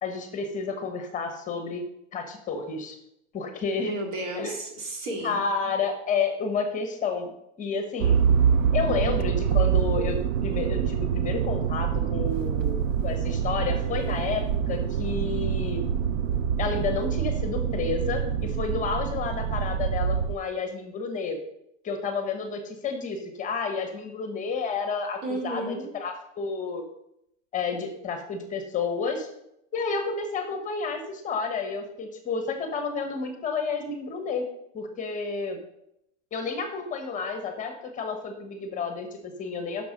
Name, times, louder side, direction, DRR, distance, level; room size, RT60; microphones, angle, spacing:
voice 1, 0.0-1.8 2.1-3.0 3.3-3.9 4.3-4.6 5.2-7.3 7.6-8.2 8.7-15.8 16.6-21.4 21.8-26.8 27.5-29.3 29.7-34.4 34.7-35.6 36.3-39.9, left 5 dB, 20° left, 6 dB, 1.1 m, -30 dB
voice 2, 3.8-5.4 25.2-26.0, right 1 dB, 70° right, 2 dB, 2.6 m, -33 dB
Motor vehicle (road), 8.0-20.4, right 8 dB, 90° right, 0.6 m, -25 dB
6.9 x 6.0 x 6.5 m, 0.79 s
supercardioid pair, 145°, 37 cm